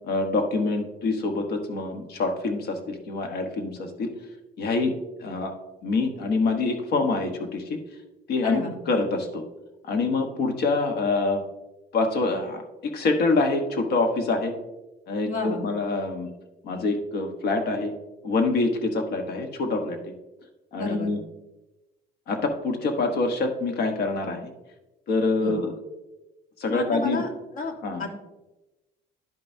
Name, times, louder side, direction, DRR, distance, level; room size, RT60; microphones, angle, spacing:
voice 1, 0.1-4.1 4.6-4.9 5.2-5.5 5.8-7.6 8.3-9.4 9.9-11.4 11.9-14.5 15.1-16.3 16.6-17.9 18.2-20.1 20.7-21.2 22.3-24.5 25.1-25.7 26.6-27.2 27.8-28.0, left 3 dB, 75° left, 5 dB, 1.2 m, -25 dB
voice 2, 8.4-8.7 15.3-15.6 20.8-21.1 25.4-25.6 26.7-28.1, left 3 dB, 55° left, 3 dB, 1.5 m, -31 dB
11.0 x 5.4 x 2.7 m, 1.0 s
cardioid pair, 110°, 17 cm